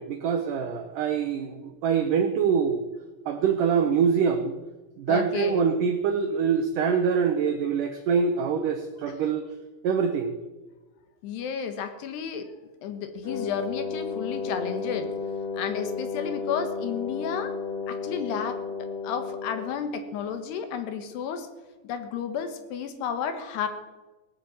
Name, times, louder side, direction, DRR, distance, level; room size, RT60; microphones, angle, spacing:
voice 1, 0.0-2.9 3.3-4.5 5.0-9.5 9.8-10.3, right 6 dB, 80° right, 7 dB, 1.8 m, -24 dB
voice 2, 5.1-5.6 11.2-12.5 12.8-15.1 15.5-17.5 17.9-21.5 21.8-23.7, left 7 dB, 75° left, 8 dB, 3.4 m, -32 dB
Wind instrument woodwind instrument, 13.2-19.8, left 4 dB, 15° left, 2.5 m, -33 dB
18.5 x 8.6 x 7.7 m, 1.2 s
omnidirectional pair, 4.9 m